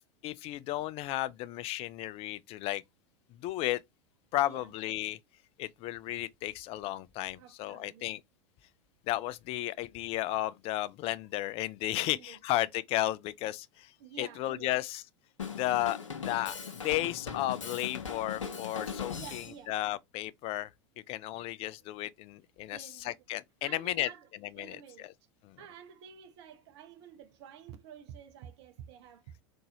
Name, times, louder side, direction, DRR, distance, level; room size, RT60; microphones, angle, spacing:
voice 1, 0.2-2.8 3.3-3.8 4.3-5.2 5.6-8.2 9.1-13.9 14.2-15.0 15.6-16.0 16.3-16.6 16.8-20.7 21.1-24.1 24.6-25.1 25.4-25.6, left 15 dB, 40° left, 0.4 m, -33 dB
voice 2, 4.4-4.7 7.4-8.1 12.0-12.4 14.0-14.8 19.1-19.8 21.8-21.9 22.7-23.2 23.6-24.3 24.5-25.1 25.6-29.3, right 8 dB, 60° right, 0.7 m, -50 dB
Drum kit, 15.4-19.6, left 6 dB, 85° left, 0.8 m, -39 dB
4.0 x 2.7 x 2.7 m
figure-of-eight pair, 85°, 16 cm